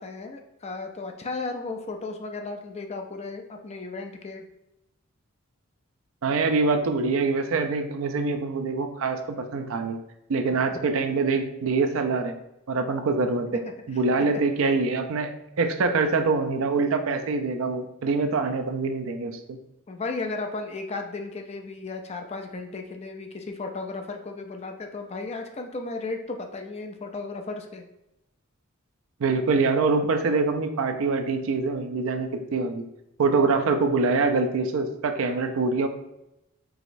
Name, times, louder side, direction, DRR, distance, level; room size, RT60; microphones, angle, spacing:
voice 1, 0.0-4.4 19.9-27.8, left 3 dB, 30° left, 4 dB, 0.4 m, -35 dB
voice 2, 6.2-10.0 10.3-12.3 12.7-13.6 13.9-15.3 15.6-19.6 29.2-32.8 33.2-35.9, right 4 dB, 70° right, 7 dB, 0.4 m, -24 dB
4.8 x 3.0 x 2.5 m, 0.87 s
head